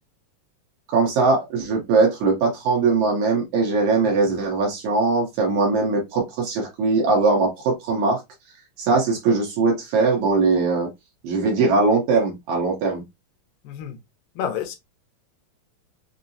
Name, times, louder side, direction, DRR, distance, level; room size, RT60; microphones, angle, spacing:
voice 1, 0.9-8.2 8.8-10.9 11.2-13.0, right 3 dB, 70° right, 2.0 m, -20 dB
voice 2, 13.6-14.0 14.4-14.8, left 8 dB, 90° left, 2.3 m, -29 dB
5.4 x 2.0 x 2.6 m
omnidirectional pair, 3.8 m